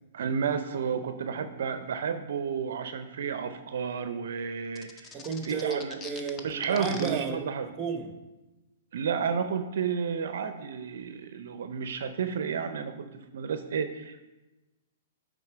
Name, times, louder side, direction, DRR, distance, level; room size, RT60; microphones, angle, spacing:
voice 1, 0.1-5.1 5.4-6.0 6.4-7.7 8.9-14.3, right 6 dB, 70° right, 9 dB, 0.5 m, -31 dB
sound 1, 4.8-7.1, left 5 dB, 20° left, 0.6 m, -42 dB
voice 2, 5.1-7.5 7.8-8.1, right 6 dB, 25° right, 6 dB, 0.9 m, -33 dB
9.6 x 3.8 x 4.5 m, 1.1 s
hypercardioid pair, 135°, 0 cm